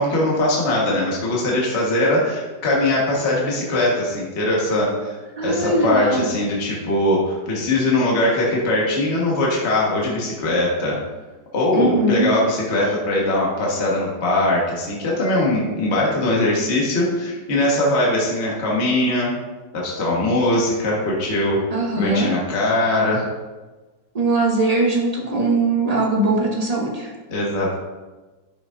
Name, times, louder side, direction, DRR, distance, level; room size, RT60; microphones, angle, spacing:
voice 1, 0.0-5.2 5.4-11.0 11.5-19.3 19.7-21.6 21.9-23.3 27.3-27.7, left 1 dB, 35° left, -4 dB, 1.6 m, -21 dB
voice 2, 5.4-6.3 11.7-12.4 21.7-22.3 24.1-27.1, right 2 dB, 45° right, -1 dB, 0.4 m, -20 dB
11.0 x 6.2 x 2.6 m, 1.2 s
omnidirectional pair, 2.2 m